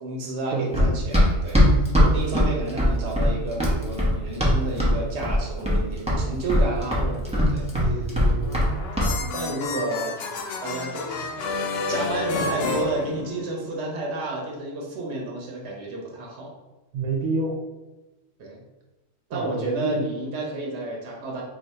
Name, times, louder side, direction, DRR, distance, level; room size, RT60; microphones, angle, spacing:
voice 1, 0.0-1.6 2.1-7.9 9.0-10.2 10.6-16.5 18.4-18.6 19.3-21.4, right 2 dB, 55° right, -2 dB, 1.1 m, -31 dB
Run, 0.7-5.0 5.2-5.8 6.1-8.7 9.0-9.1, left 1 dB, 10° right, 0.4 m, -20 dB
voice 2, 7.7-8.5 16.9-17.5 19.3-20.0, right 3 dB, 80° right, -2 dB, 1.2 m, -28 dB
sound 1, 8.4-13.8, left 3 dB, 65° left, 0.6 m, -30 dB
2.8 x 2.7 x 4.2 m, 1.1 s
omnidirectional pair, 1.4 m